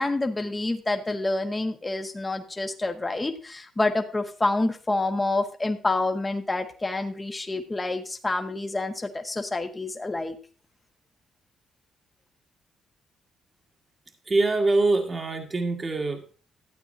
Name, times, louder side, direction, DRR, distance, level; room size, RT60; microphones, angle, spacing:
voice 1, 0.0-10.4, left 2 dB, 20° left, 5 dB, 1.5 m, -28 dB
voice 2, 14.3-16.3, right 2 dB, 30° right, 4 dB, 1.7 m, -24 dB
13.0 x 8.6 x 2.7 m, 0.38 s
cardioid pair, 90°, 0 cm